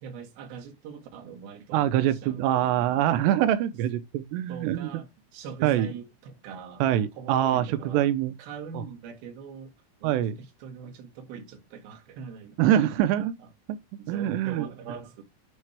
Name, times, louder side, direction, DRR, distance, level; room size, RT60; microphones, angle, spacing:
voice 1, 0.0-3.1 4.5-6.8 7.1-8.1 8.4-9.7 10.0-12.9 13.4-13.5 14.0-15.2, right 6 dB, 60° right, 2.9 m, -42 dB
voice 2, 1.7-4.9 5.6-5.9 6.8-8.3 8.7-8.8 10.0-10.4 12.6-13.3 13.7-13.8 14.1-14.7, right 11 dB, 85° right, 2.4 m, -24 dB
9.9 x 3.5 x 3.3 m
omnidirectional pair, 5.6 m